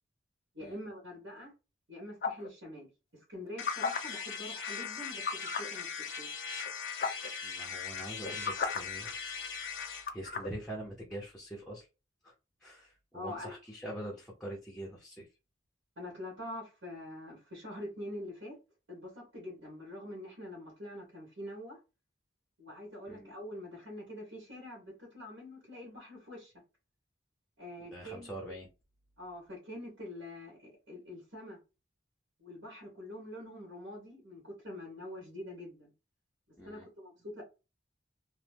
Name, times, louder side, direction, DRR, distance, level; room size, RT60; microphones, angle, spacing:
voice 1, 0.5-1.5 1.9-6.3 13.1-13.6 16.0-18.6 18.9-21.8 22.6-26.5 27.6-28.3 29.2-31.6 32.4-35.9 36.6-37.4, left 1 dB, 80° right, 1.5 m, -45 dB
sound 1, 2.2-2.5 3.5-4.0 5.2-5.7 6.7-6.8 7.0-7.3 8.1-8.8 10.1-10.5, left 5 dB, 50° left, 0.5 m, -34 dB
sound 2, 3.6-10.1, left 6 dB, 75° left, 0.8 m, -40 dB
voice 2, 7.4-9.1 9.7-11.9 12.2-12.3 12.6-15.3 23.1-23.3 27.8-28.7 36.6-36.9, right 1 dB, 5° left, 0.6 m, -44 dB
3.0 x 2.1 x 3.3 m
head